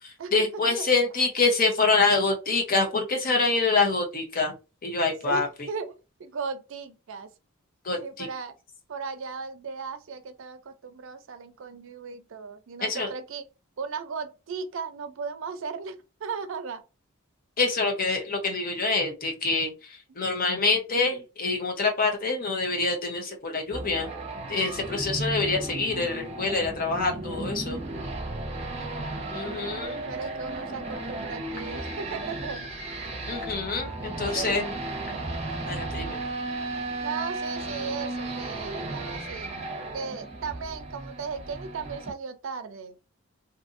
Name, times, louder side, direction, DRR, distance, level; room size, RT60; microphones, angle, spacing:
voice 1, 0.0-4.5 4.8-5.5 7.8-8.3 12.8-13.1 17.6-24.1 24.5-27.8 29.3-30.0 33.3-34.7 35.7-36.2, left 3 dB, 45° left, 0.8 m, -26 dB
voice 2, 5.2-5.9 6.2-7.3 8.0-8.5 8.9-13.4 13.8-16.8 28.8-32.7 34.3-34.6 37.0-39.6 39.9-43.0, right 5 dB, 65° right, 0.4 m, -36 dB
sound 1, 23.7-42.1, right 2 dB, 30° right, 0.7 m, -34 dB
2.6 x 2.5 x 2.5 m
head